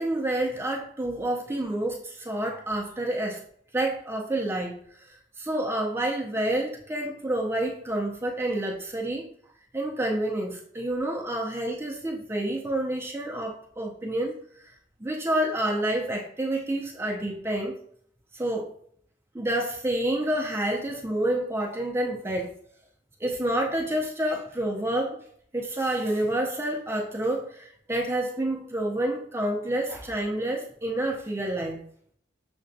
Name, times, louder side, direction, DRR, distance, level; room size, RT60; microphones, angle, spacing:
voice 1, 0.0-3.4 3.7-4.8 5.4-9.3 9.7-14.3 15.0-17.7 18.3-18.7 19.3-22.5 23.2-25.2 25.5-31.8, right 1 dB, 10° right, -1 dB, 0.4 m, -28 dB
6.5 x 2.2 x 2.6 m, 0.64 s
head